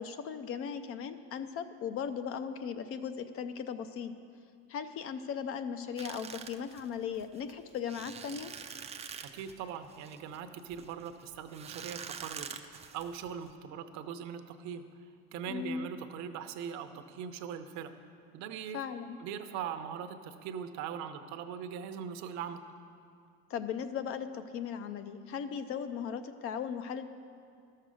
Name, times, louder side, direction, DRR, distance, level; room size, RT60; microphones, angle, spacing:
voice 1, 0.0-4.1 4.7-8.5 15.5-15.9 18.7-19.2 23.5-27.0, left 7 dB, 45° left, 10 dB, 0.5 m, -37 dB
sound 1, 6.0-13.5, right 7 dB, 20° right, 0.4 m, -46 dB
voice 2, 9.2-14.8 15.3-17.9 18.3-18.8 19.2-22.6, right 8 dB, 60° right, 8 dB, 0.8 m, -41 dB
12.5 x 6.6 x 6.3 m, 2.3 s
cardioid pair, 140°, 31 cm